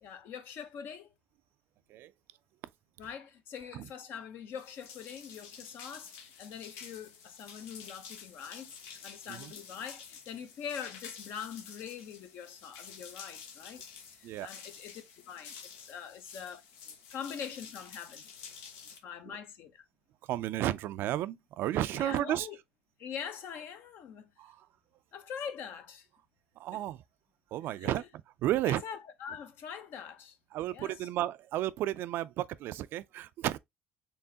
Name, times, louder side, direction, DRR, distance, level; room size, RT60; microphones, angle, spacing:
voice 1, 0.0-1.1 3.0-6.1 6.4-8.8 9.0-13.8 14.1-16.6 17.1-18.2 19.0-19.8 21.9-22.6 23.0-24.3 25.1-26.1 27.8-28.0 28.6-30.4 30.7-31.1, left 7 dB, 60° left, 0.9 m, -43 dB
sound 1, 4.6-19.0, left 6 dB, 90° left, 0.9 m, -50 dB
voice 2, 20.3-22.5 24.4-24.7 26.6-27.0 27.5-28.0 28.4-28.8 30.5-33.6, right 13 dB, 65° right, 0.4 m, -32 dB
4.5 x 3.4 x 2.8 m
cardioid pair, 110°, 4 cm